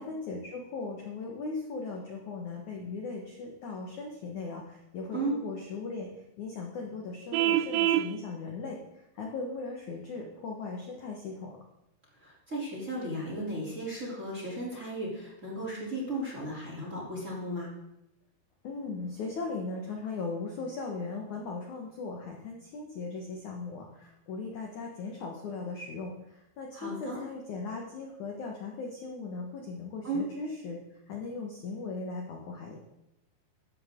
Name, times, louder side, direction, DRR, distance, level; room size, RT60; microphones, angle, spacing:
voice 1, 0.0-11.6 18.6-32.8, left 4 dB, 65° left, 0 dB, 1.9 m, -38 dB
Vehicle horn car horn honking, 7.3-8.1, right 12 dB, 85° right, 2.7 m, -25 dB
voice 2, 12.2-17.7 26.7-27.2 30.0-30.3, right 1 dB, 20° right, -4 dB, 2.9 m, -35 dB
14.5 x 12.0 x 3.7 m, 0.88 s
omnidirectional pair, 5.5 m